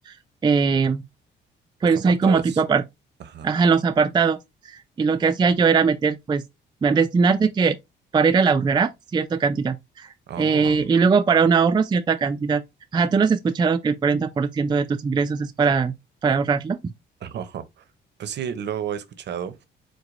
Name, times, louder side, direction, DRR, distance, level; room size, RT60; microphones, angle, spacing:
voice 1, 0.4-1.0 1.8-2.8 3.4-4.4 4.7-6.4 6.8-7.8 8.1-10.1 10.4-12.6 12.9-16.0 16.2-16.8, right 5 dB, 20° right, 0.4 m, -20 dB
voice 2, 2.0-2.6 3.2-3.5 10.3-10.9 17.2-17.8 18.2-19.6, right 9 dB, 60° right, 0.7 m, -32 dB
4.7 x 2.1 x 3.8 m
cardioid pair, 90°, 20 cm